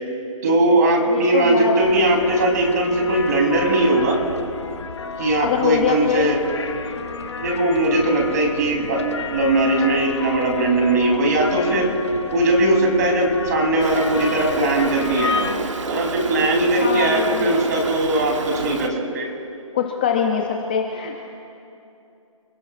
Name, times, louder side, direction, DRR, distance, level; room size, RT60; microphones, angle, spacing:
voice 1, 0.4-4.2 5.2-6.4 7.4-9.0 9.3-11.9 12.3-15.6 15.8-19.3, right 2 dB, 30° right, 0 dB, 3.5 m, -19 dB
voice 2, 1.1-1.8 5.4-6.3 16.8-17.6 19.7-21.1, left 7 dB, 15° left, 2 dB, 0.6 m, -23 dB
sound 1, 1.8-15.6, left 5 dB, 55° left, 1.2 m, -31 dB
Stream, 13.8-18.9, right 4 dB, 60° right, 1.4 m, -30 dB
29.5 x 16.5 x 2.5 m, 2.7 s
hypercardioid pair, 170°, 18 cm